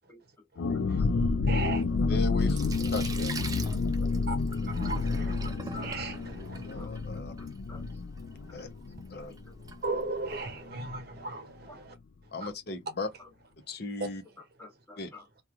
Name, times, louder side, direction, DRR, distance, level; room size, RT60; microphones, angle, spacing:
sound 1, 0.6-10.0 10.2-10.3 10.7-11.0, left 4 dB, 75° left, 0.3 m, -30 dB
voice 1, 1.5-1.8 4.3-4.4 4.7-6.9 9.8-11.9 12.4-12.5 14.0-14.1, right 3 dB, 55° right, 0.7 m, -36 dB
Sink (filling or washing), 1.7-10.5, right 3 dB, 20° right, 0.4 m, -44 dB
voice 2, 2.1-2.6 2.9-3.3 6.7-7.3 8.5-8.7 9.1-9.3 12.3-13.1 13.7-14.2 15.0-15.1, left 3 dB, 55° left, 0.8 m, -36 dB
voice 3, 4.0-4.3 6.8-7.9 8.5-8.6 9.1-9.6 11.7-11.8 13.2-13.3 14.6-15.3, left 3 dB, 15° left, 1.0 m, -52 dB
2.9 x 2.3 x 2.4 m
head